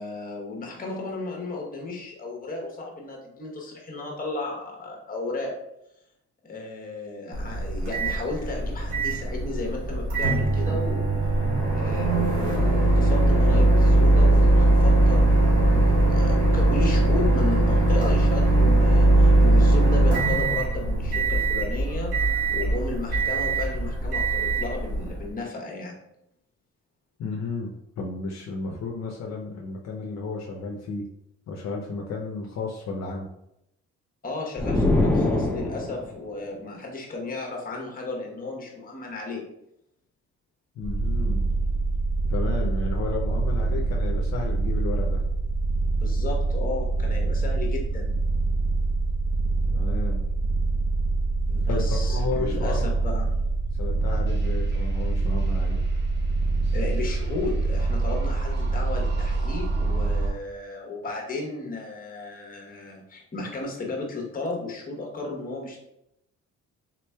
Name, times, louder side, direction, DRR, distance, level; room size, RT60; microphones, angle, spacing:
voice 1, 0.0-5.5 6.4-11.1 11.8-22.1 22.5-25.9 34.2-39.5 46.0-48.1 51.5-53.2 56.7-65.8, left 3 dB, 30° left, -1 dB, 1.0 m, -34 dB
Microwave oven, 7.3-25.3, right 2 dB, 90° right, 1.1 m, -20 dB
voice 2, 27.2-27.7 28.0-31.0 31.5-33.3 40.8-41.4 42.3-45.2 49.7-50.2 51.7-53.1 53.8-55.8, left 4 dB, 60° left, -1 dB, 0.6 m, -33 dB
sound 1, 34.6-36.2, left 2 dB, 5° left, 0.5 m, -23 dB
sound 2, 40.8-60.3, right 3 dB, 35° right, 0.6 m, -25 dB
3.6 x 2.9 x 2.2 m, 0.80 s
cardioid pair, 90°, 30 cm